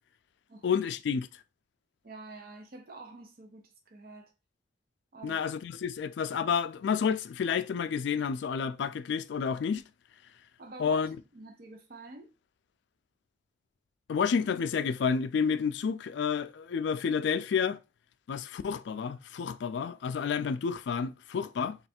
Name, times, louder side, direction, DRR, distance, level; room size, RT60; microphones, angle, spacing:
voice 1, 0.6-1.3 5.2-9.8 10.8-11.2 14.1-17.8 18.3-21.8, left 6 dB, 65° left, 0.3 m, -30 dB
voice 2, 2.0-4.3 5.1-5.6 10.6-12.3, right 3 dB, 50° right, 0.6 m, -47 dB
3.2 x 2.3 x 4.2 m
head